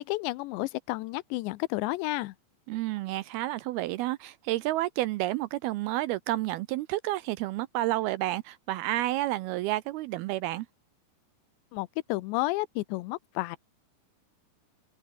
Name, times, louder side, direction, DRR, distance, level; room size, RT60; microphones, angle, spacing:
voice 1, 0.1-2.3 11.7-13.6, left 20 dB, 90° left, 3.0 m, -31 dB
voice 2, 2.7-10.7, right 16 dB, 80° right, 2.3 m, -30 dB
omnidirectional pair, 5.0 m